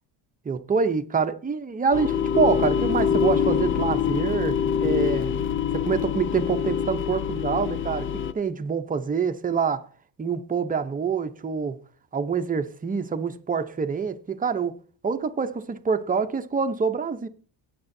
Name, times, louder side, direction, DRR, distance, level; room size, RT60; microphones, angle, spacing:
voice 1, 0.4-5.3 5.7-9.9 10.2-11.8 12.1-14.8 15.0-17.3, right 5 dB, 20° right, 0.7 m, -26 dB
sound 1, 1.9-8.3, left 7 dB, 30° left, 0.4 m, -25 dB
18.5 x 6.8 x 2.7 m
cardioid pair, 130°, 44 cm